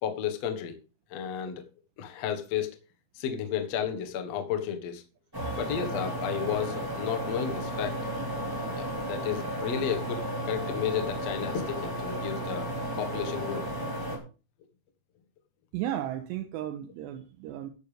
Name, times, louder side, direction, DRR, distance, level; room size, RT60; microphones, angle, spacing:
voice 1, 0.0-0.7 1.1-1.6 2.0-2.7 3.1-5.0 5.6-8.0 8.7-12.7 13.0-13.6, left 8 dB, 70° left, 6 dB, 1.5 m, -32 dB
sound 1, 5.3-14.2, right 1 dB, 5° right, 2.2 m, -33 dB
voice 2, 15.7-17.7, right 11 dB, 80° right, 8 dB, 2.9 m, -35 dB
14.0 x 9.9 x 3.4 m, 0.32 s
omnidirectional pair, 5.3 m